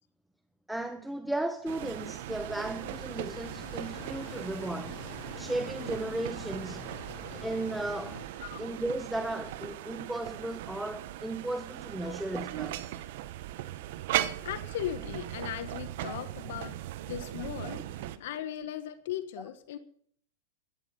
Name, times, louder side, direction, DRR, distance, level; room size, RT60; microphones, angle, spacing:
voice 1, 0.7-5.0 5.4-6.9 7.4-8.2 8.6-12.9, right 1 dB, 5° right, 0.8 m, -35 dB
sound 1, 1.7-18.2, right 13 dB, 60° right, 1.0 m, -38 dB
sound 2, 2.8-8.3, left 5 dB, 45° left, 6.1 m, -46 dB
voice 2, 14.4-16.8 17.1-17.8 18.2-19.8, left 11 dB, 65° left, 1.3 m, -38 dB
15.5 x 12.0 x 5.4 m
hypercardioid pair, 110°, 0 cm